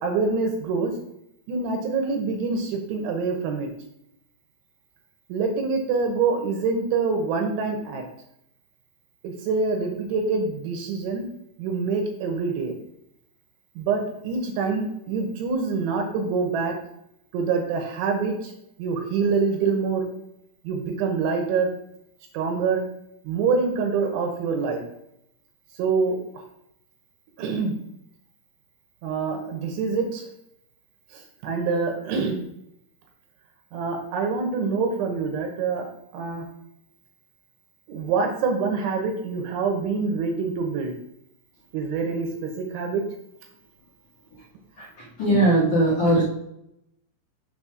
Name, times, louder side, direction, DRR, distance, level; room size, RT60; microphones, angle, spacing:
voice 1, 0.0-1.0 1.5-3.7 5.3-8.0 9.2-11.3 11.6-12.7 13.8-16.7 17.3-18.5 18.8-20.1 20.6-21.7 22.3-22.8 23.2-24.8 25.8-26.4 27.4-27.7 29.0-30.3 31.1-32.4 33.7-35.8 36.1-36.5 37.9-40.9 41.7-43.0, right 4 dB, 75° right, 3 dB, 3.1 m, -25 dB
voice 2, 44.8-46.2, right 1 dB, 60° left, -6 dB, 2.1 m, -20 dB
7.2 x 4.1 x 6.1 m, 0.78 s
omnidirectional pair, 6.0 m